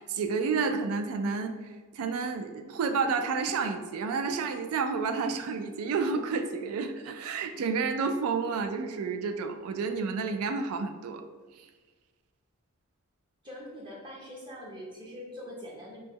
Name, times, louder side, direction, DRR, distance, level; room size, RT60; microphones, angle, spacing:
voice 1, 0.0-1.5 1.9-11.2, right 5 dB, 80° right, 8 dB, 0.3 m, -30 dB
voice 2, 13.4-16.0, equal, 20° right, -4 dB, 0.5 m, -43 dB
2.9 x 2.1 x 3.5 m, 1.4 s
head